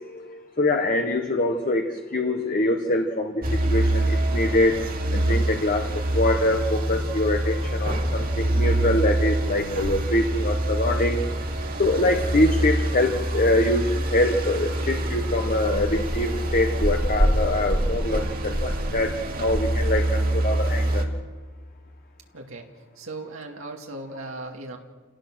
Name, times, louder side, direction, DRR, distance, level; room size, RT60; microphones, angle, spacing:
voice 1, 0.6-4.8 5.1-5.9 6.1-11.2 11.8-19.1 19.4-21.0, left 1 dB, 40° left, 4 dB, 1.3 m, -24 dB
sound 1, 3.4-21.0, right 1 dB, 45° right, 2.4 m, -25 dB
voice 2, 23.0-24.8, right 2 dB, 80° right, 1 dB, 2.3 m, -37 dB
28.5 x 18.0 x 6.3 m, 1.4 s
head